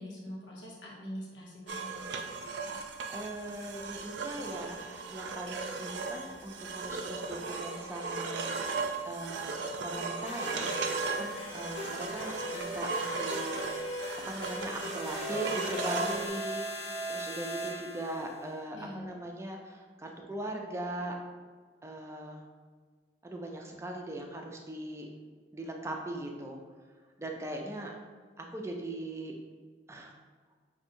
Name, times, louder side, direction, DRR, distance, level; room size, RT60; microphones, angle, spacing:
voice 1, 0.0-2.3 18.7-19.1, equal, 85° left, -5 dB, 1.0 m, -44 dB
sound 1, 1.7-16.3, right 4 dB, 75° right, 0.4 m, -37 dB
voice 2, 2.5-9.6 9.8-13.9 14.3-21.1 21.8-22.4 23.2-25.1 25.5-26.6 27.2-27.9 28.4-29.4 29.9-30.2, right 1 dB, 15° right, 1 dB, 0.4 m, -40 dB
sound 2, 10.3-18.4, equal, 35° left, 0.5 m, -39 dB
5.4 x 2.7 x 2.6 m, 1.5 s
head